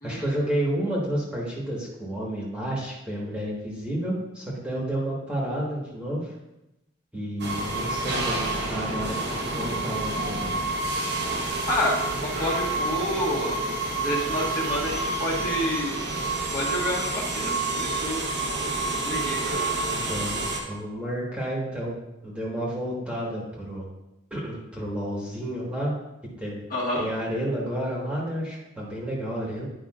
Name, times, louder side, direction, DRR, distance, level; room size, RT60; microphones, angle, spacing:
voice 1, 0.0-6.3 7.1-10.5 19.9-22.0 22.2-23.9 24.3-25.9 26.4-26.6 27.0-29.7, right 1 dB, 5° right, -5 dB, 1.4 m, -31 dB
sound 1, 7.4-20.6, right 2 dB, 50° right, 1.0 m, -28 dB
voice 2, 11.7-13.6 14.0-16.0 16.5-18.2 19.0-19.4 26.7-27.1, left 1 dB, 40° left, -5 dB, 1.5 m, -28 dB
10.5 x 5.1 x 2.4 m, 0.92 s
head